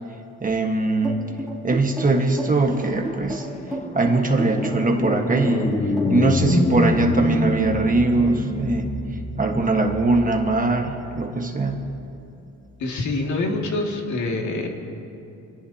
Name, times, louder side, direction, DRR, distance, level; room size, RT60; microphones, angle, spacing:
voice 1, 0.4-1.2 1.6-3.5 3.9-5.8 6.1-8.9 9.4-11.9, right 3 dB, 25° right, 3 dB, 1.4 m, -21 dB
sound 1, 1.0-6.3, right 1 dB, ahead, 3.7 m, -32 dB
sound 2, 2.7-12.2, left 2 dB, 20° left, 1.0 m, -27 dB
voice 2, 12.8-14.7, left 2 dB, 60° left, 1 dB, 2.3 m, -25 dB
25.5 x 18.0 x 2.9 m, 2.8 s
cardioid pair, 115°, 33 cm